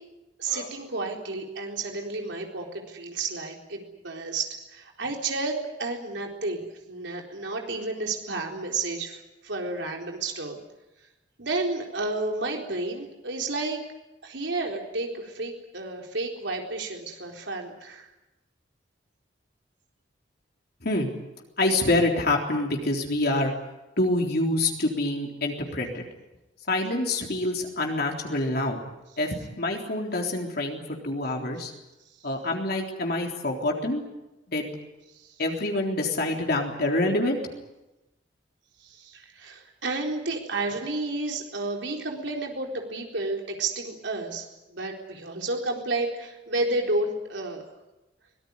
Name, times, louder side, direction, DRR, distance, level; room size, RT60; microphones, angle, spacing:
voice 1, 0.4-10.6 11.4-13.8 14.2-18.1 38.8-47.6, right 2 dB, 85° right, 1 dB, 4.1 m, -31 dB
voice 2, 21.6-23.5 24.0-26.1 26.7-28.8 29.2-31.7 32.2-34.0 34.5-34.7 35.4-37.4, left 2 dB, 60° left, 1 dB, 3.7 m, -26 dB
24.0 x 19.0 x 9.7 m, 0.99 s
head